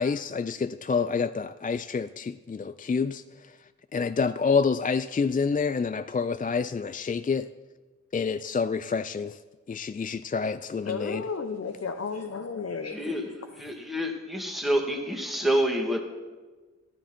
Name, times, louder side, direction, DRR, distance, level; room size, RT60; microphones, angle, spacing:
voice 1, 0.0-3.2 3.9-7.5 8.1-9.4 9.7-11.2, left 5 dB, 30° left, 12 dB, 0.4 m, -28 dB
voice 2, 10.8-13.1, left 5 dB, 55° left, 4 dB, 0.8 m, -33 dB
voice 3, 12.9-16.0, equal, ahead, 1 dB, 2.0 m, -28 dB
12.5 x 9.8 x 4.4 m, 1.3 s
cardioid pair, 40°, 30 cm